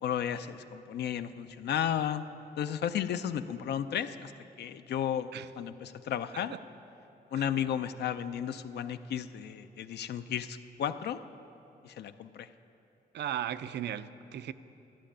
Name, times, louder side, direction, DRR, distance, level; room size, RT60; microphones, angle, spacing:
voice 1, 0.0-2.2 2.6-4.3 4.6-5.3 5.6-6.5 7.3-11.2 11.8-12.5, left 9 dB, 75° left, 10 dB, 0.4 m, -33 dB
voice 2, 13.1-14.5, right 10 dB, 85° right, 13 dB, 0.5 m, -36 dB
11.5 x 7.4 x 10.0 m, 2.9 s
wide cardioid pair, 150°, 17 cm